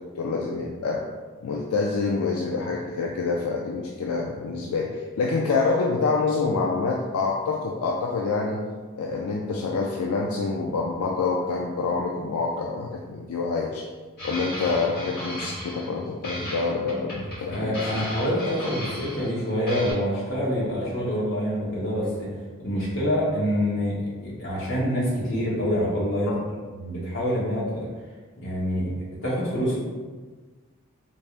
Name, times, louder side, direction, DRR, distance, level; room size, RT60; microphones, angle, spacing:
voice 1, 0.2-1.0 1.4-8.6 9.0-13.8 14.2-18.0 26.3-26.4, left 4 dB, 90° left, -1 dB, 0.4 m, -27 dB
sound 1, 14.2-16.0 16.2-19.4 19.7-19.9, equal, 45° left, 1.3 m, -36 dB
voice 2, 17.5-22.3 22.6-23.9 24.2-26.4 26.7-27.9 28.4-28.9 29.2-29.8, equal, 60° left, -8 dB, 1.5 m, -26 dB
4.1 x 2.4 x 3.4 m, 1.4 s
head